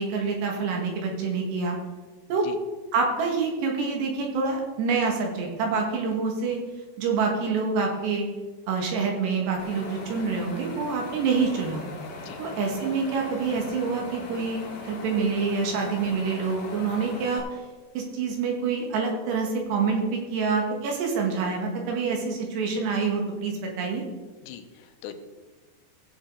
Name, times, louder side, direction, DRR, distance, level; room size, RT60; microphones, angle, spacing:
voice 1, 0.0-1.8 2.3-2.5 2.9-6.6 7.0-8.3 8.7-11.8 12.4-17.4 18.0-24.0, right 4 dB, 70° right, 1 dB, 3.7 m, -27 dB
Wind, 9.6-17.4, left 3 dB, 50° left, 2.9 m, -40 dB
voice 2, 24.4-25.2, left 9 dB, 85° left, 7 dB, 3.0 m, -41 dB
16.5 x 7.3 x 3.8 m, 1.3 s
omnidirectional pair, 5.2 m